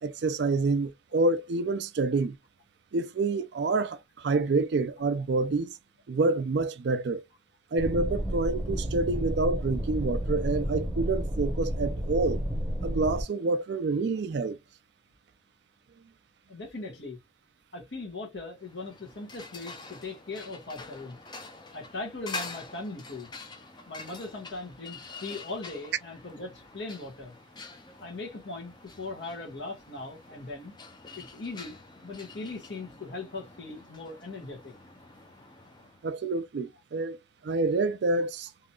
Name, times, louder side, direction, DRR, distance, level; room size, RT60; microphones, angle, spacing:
voice 1, 0.0-2.4 2.9-5.8 6.1-7.2 7.7-12.4 12.8-14.6 36.0-37.2 37.4-38.5, right 3 dB, 60° right, 0.4 m, -27 dB
sound 1, 7.8-13.2, equal, 10° right, 0.9 m, -31 dB
voice 2, 16.5-17.2 17.7-21.2 21.7-23.3 23.9-27.3 28.0-30.7 31.2-34.7, left 3 dB, 65° left, 1.4 m, -39 dB
sound 2, 18.6-36.0, left 3 dB, 20° left, 0.6 m, -46 dB
3.6 x 2.8 x 2.3 m
head